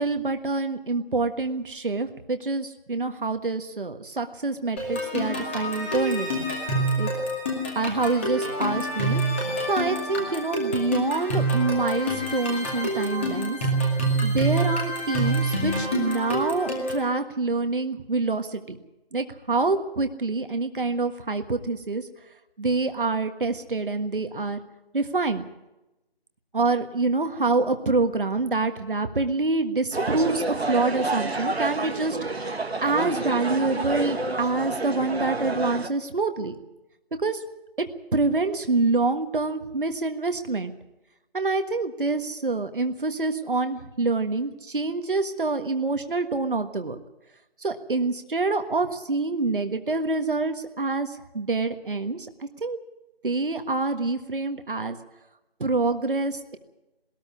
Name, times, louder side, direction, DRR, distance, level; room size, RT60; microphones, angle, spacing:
voice 1, 0.0-6.4 7.0-7.1 7.7-9.2 9.7-13.6 14.2-18.8 19.1-22.1 22.6-24.6 24.9-25.4 26.5-32.4 32.8-36.5 37.2-37.4 37.8-37.9 38.1-40.7 41.3-47.0 47.6-52.8 53.2-55.0 55.6-56.6, right 3 dB, 55° right, 7 dB, 1.6 m, -26 dB
sound 1, 4.8-17.1, right 1 dB, 10° left, 2.2 m, -27 dB
sound 2, 29.9-35.9, right 2 dB, 80° right, 1.8 m, -29 dB
20.0 x 13.5 x 9.7 m, 0.98 s
figure-of-eight pair, 170°, 31 cm